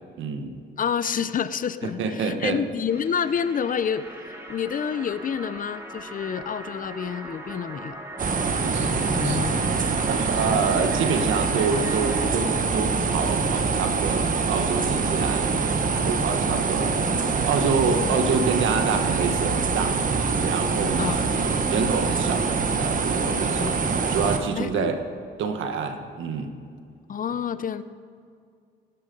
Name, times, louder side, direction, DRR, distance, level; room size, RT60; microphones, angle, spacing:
voice 1, 0.2-0.5 1.8-2.6 8.7-8.9 9.2-9.4 10.1-15.6 16.0-17.0 17.5-20.0 20.4-21.3 21.7-22.5 22.8-23.8 24.1-25.0 25.4-26.5, right 5 dB, 80° right, 6 dB, 1.4 m, -27 dB
voice 2, 0.8-8.0 8.6-9.6 18.0-18.2 21.0-21.2 23.5-23.9 24.5-24.9 27.1-27.8, left 7 dB, 45° left, 14 dB, 0.7 m, -29 dB
sound 1, 2.9-12.3, right 1 dB, 15° right, 2.5 m, -39 dB
sound 2, 8.2-24.4, right 4 dB, 45° right, 1.2 m, -24 dB
18.0 x 9.9 x 5.4 m, 2.3 s
cardioid pair, 90°, 20 cm